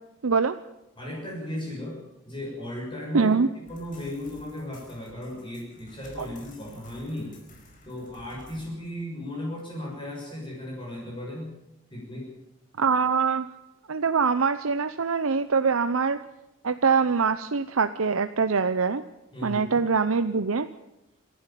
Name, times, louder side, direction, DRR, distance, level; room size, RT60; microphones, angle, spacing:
voice 1, 0.2-0.6 3.1-3.5 6.2-6.3 12.8-13.5 13.9-16.2 16.6-19.0 19.4-20.7, right 5 dB, 90° right, 10 dB, 0.7 m, -23 dB
voice 2, 1.0-2.0 2.2-7.4 7.8-11.5 11.9-12.3 19.3-19.8, left 1 dB, 25° left, -3 dB, 6.7 m, -36 dB
sound 1, 3.7-8.7, left 1 dB, 40° left, 5.0 m, -52 dB
27.5 x 11.5 x 9.1 m, 0.91 s
head